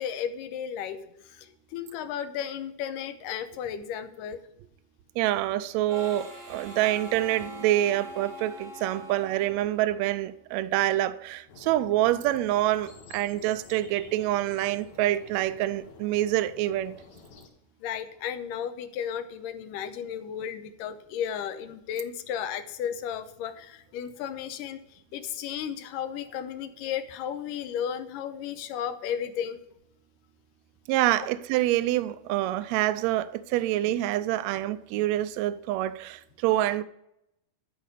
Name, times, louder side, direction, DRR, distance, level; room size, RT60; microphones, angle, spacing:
voice 1, 0.0-4.4 17.8-29.6, left 9 dB, 90° left, 2.4 m, -34 dB
voice 2, 5.2-16.9 30.9-36.8, right 14 dB, 80° right, 1.6 m, -26 dB
Harmonica, 5.9-10.4, left 1 dB, 40° right, 1.1 m, -43 dB
sound 1, 11.5-17.5, left 4 dB, 65° left, 2.6 m, -50 dB
13.0 x 5.1 x 6.7 m
omnidirectional pair, 3.7 m